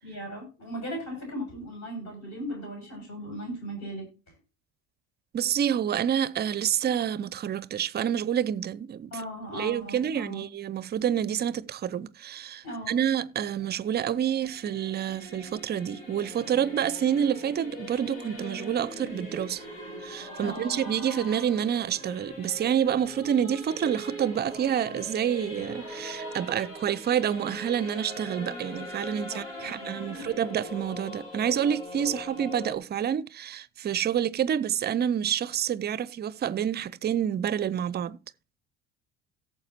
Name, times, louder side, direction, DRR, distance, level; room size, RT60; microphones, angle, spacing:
voice 1, 0.0-4.1 9.1-10.4 12.6-13.1 20.4-20.8 29.0-30.5, equal, 45° left, 7.2 m, -38 dB
voice 2, 5.3-9.1 9.5-19.6 20.0-38.2, right 9 dB, 25° right, 0.5 m, -28 dB
Singing / Musical instrument, 13.4-32.8, left 1 dB, 75° left, 2.7 m, -41 dB
17.0 x 7.3 x 2.9 m
figure-of-eight pair, 60°, 40 cm